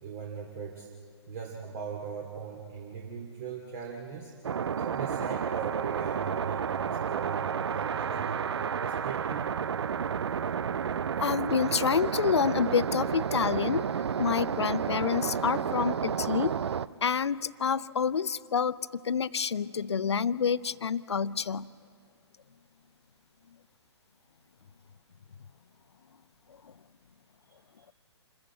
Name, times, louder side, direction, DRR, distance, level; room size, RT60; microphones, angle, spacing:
voice 1, 0.0-0.9 1.3-4.3 4.8-6.8 7.1-7.5 7.7-9.5, right 6 dB, 40° right, 0 dB, 2.6 m, -39 dB
sound 1, 4.4-16.9, right 7 dB, 65° right, 0.5 m, -31 dB
voice 2, 11.2-13.9 14.2-16.5 17.0-18.8 19.0-21.7 26.6-26.7, left 6 dB, 70° left, 18 dB, 0.6 m, -28 dB
27.5 x 14.0 x 8.3 m, 2.2 s
figure-of-eight pair, 125°, 15 cm